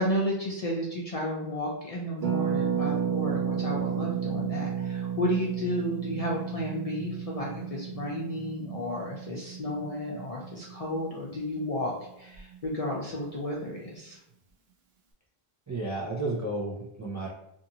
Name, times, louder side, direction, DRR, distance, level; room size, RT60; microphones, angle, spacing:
voice 1, 0.0-14.2, left 1 dB, 50° left, -3 dB, 0.4 m, -32 dB
Harp, 2.2-11.8 12.1-12.2 12.3-12.7, right 8 dB, 80° right, 0.8 m, -33 dB
voice 2, 15.7-17.3, right 2 dB, 25° right, -5 dB, 0.4 m, -32 dB
2.5 x 2.5 x 2.8 m, 0.84 s
omnidirectional pair, 1.0 m